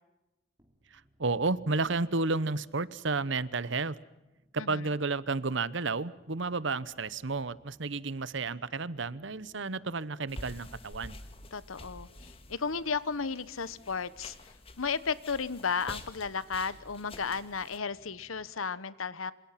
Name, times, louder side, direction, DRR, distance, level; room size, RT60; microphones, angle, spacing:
sound 1, 0.6-18.5, equal, 20° right, 3.4 m, -65 dB
voice 1, 0.9-4.0 4.5-11.2, right 3 dB, 60° right, 18 dB, 0.9 m, -32 dB
sound 2, 10.3-17.8, left 2 dB, 30° left, 1.9 m, -48 dB
voice 2, 11.5-14.4 14.8-19.3, left 5 dB, 85° left, 16 dB, 1.1 m, -34 dB
27.5 x 27.0 x 5.9 m, 0.98 s
head